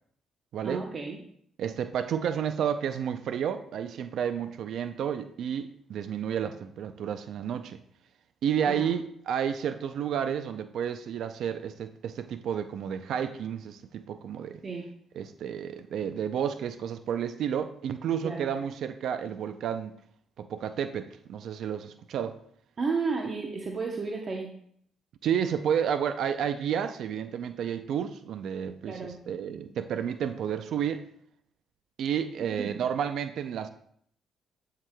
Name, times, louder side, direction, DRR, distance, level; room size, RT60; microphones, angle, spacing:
voice 1, 0.6-1.2 8.7-8.9 14.6-14.9 18.2-18.5 22.8-24.5 28.8-29.2 32.4-32.7, right 4 dB, 40° right, 1 dB, 0.8 m, -32 dB
voice 2, 1.6-7.8 8.4-14.6 15.2-19.9 20.4-22.3 25.2-31.0 32.0-33.7, right 8 dB, 70° right, 9 dB, 0.4 m, -31 dB
11.0 x 4.7 x 2.2 m, 0.66 s
cardioid pair, 90°, 0 cm